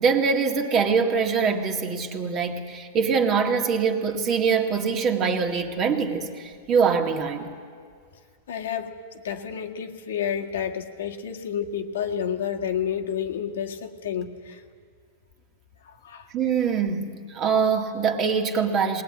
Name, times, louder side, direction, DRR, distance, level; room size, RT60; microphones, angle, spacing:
voice 1, 0.0-7.5 16.3-19.0, right 5 dB, 30° right, 1.9 m, -23 dB
voice 2, 8.5-8.9 9.2-14.6 16.0-16.3, left 8 dB, 85° left, 1.7 m, -30 dB
21.0 x 19.5 x 8.8 m
supercardioid pair, 150°, 0 cm